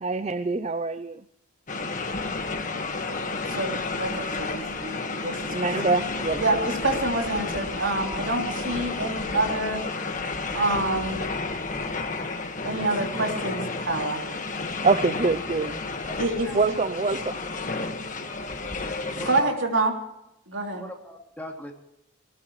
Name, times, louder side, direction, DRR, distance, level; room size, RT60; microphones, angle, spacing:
voice 1, 0.0-1.2 5.5-6.6 14.8-15.8 16.5-17.3, right 3 dB, 30° right, 12 dB, 0.5 m, -25 dB
sound 1, 1.7-19.4, left 3 dB, 40° left, 1.5 m, -31 dB
voice 2, 3.5-5.7 6.4-9.8 10.5-11.2 12.6-14.2 16.2-16.7 19.2-19.9 20.5-20.8, right 2 dB, 65° right, 2 dB, 3.2 m, -27 dB
voice 3, 16.2-16.6 19.1-19.5 20.7-21.7, left 1 dB, 10° left, 1 dB, 2.6 m, -40 dB
20.0 x 19.0 x 3.1 m, 0.80 s
head